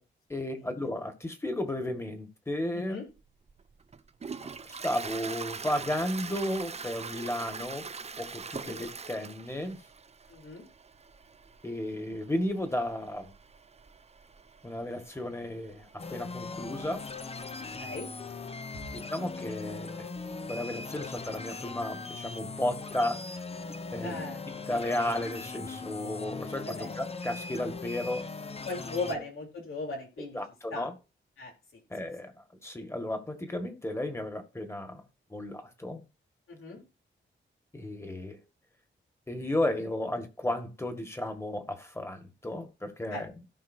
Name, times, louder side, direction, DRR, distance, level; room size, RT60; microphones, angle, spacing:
voice 1, 0.3-3.0 4.7-7.9 8.2-9.8 11.6-13.3 14.6-17.1 18.9-20.1 20.5-23.3 23.9-24.3 24.7-28.3 29.1-29.2 30.3-30.9 31.9-35.0 35.3-36.0 37.7-38.4 39.3-43.3, left 1 dB, 15° left, 1.7 m, -34 dB
voice 2, 2.7-3.1 8.6-8.7 10.3-10.7 17.8-18.1 24.0-24.4 26.7-26.9 28.7-30.4 30.7-30.9 31.4-31.8 36.5-36.8 43.1-43.2, left 3 dB, 90° left, 3.7 m, -38 dB
Toilet flush, 3.2-17.9, right 5 dB, 30° right, 0.6 m, -44 dB
sound 1, 16.0-29.2, left 3 dB, 30° left, 0.7 m, -40 dB
16.5 x 5.6 x 2.7 m
wide cardioid pair, 115°, 20 cm